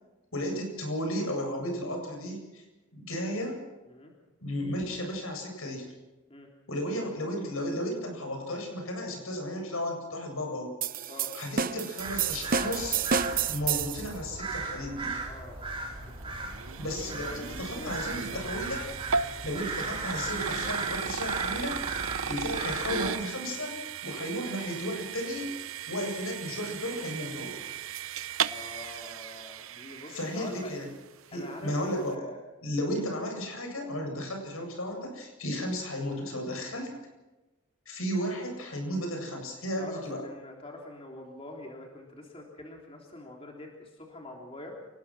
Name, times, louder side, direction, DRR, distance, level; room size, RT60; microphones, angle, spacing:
voice 1, 0.3-2.6 2.9-3.6 4.4-5.9 6.7-10.7 11.3-13.0 13.5-15.2 16.7-18.9 19.4-25.5 25.9-27.6 30.1-30.9 31.3-32.2 32.6-36.9 37.9-40.3, equal, 80° left, 3 dB, 7.9 m, -34 dB
sound 1, 10.8-14.1, right 6 dB, 40° right, 0.8 m, -29 dB
sound 2, 12.0-23.1, right 3 dB, 25° right, 3.9 m, -37 dB
voice 2, 15.2-15.9 16.6-16.8 17.1-18.6 28.4-30.7 31.3-32.4 38.1-38.3 39.8-44.7, left 2 dB, 25° left, 0 dB, 3.5 m, -45 dB
sound 3, 15.6-30.8, right 7 dB, 75° right, 0.8 m, -36 dB
29.0 x 19.0 x 6.3 m, 1.1 s
head